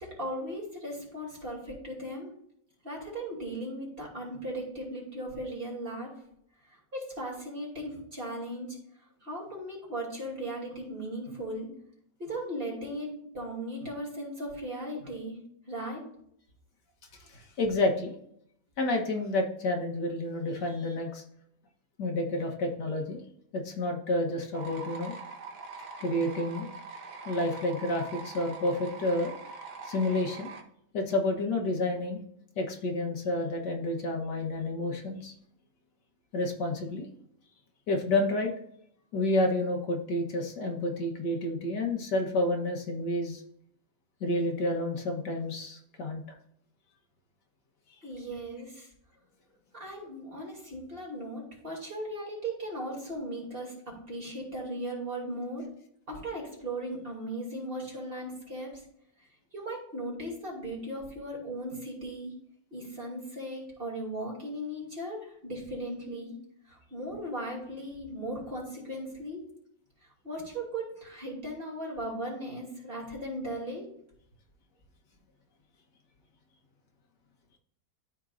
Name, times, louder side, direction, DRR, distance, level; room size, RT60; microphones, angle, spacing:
voice 1, 0.0-2.3 2.8-6.1 6.7-8.8 9.2-11.7 12.2-15.4 15.7-16.0 48.0-48.9 49.7-55.7 56.1-58.8 59.5-62.3 62.7-66.4 66.7-69.4 70.2-73.9, right 1 dB, 30° right, -3 dB, 2.9 m, -37 dB
voice 2, 17.3-18.2 18.8-21.2 22.0-23.2 23.5-25.1 26.0-26.7 27.3-29.3 29.8-30.5 30.9-32.2 32.6-35.3 36.3-37.1 37.9-38.5 39.1-43.4 44.2-46.2, left 1 dB, 70° left, 2 dB, 1.8 m, -29 dB
sound 1, 24.5-30.6, right 4 dB, 65° right, 1.5 m, -43 dB
13.0 x 4.6 x 2.5 m, 0.70 s
omnidirectional pair, 1.9 m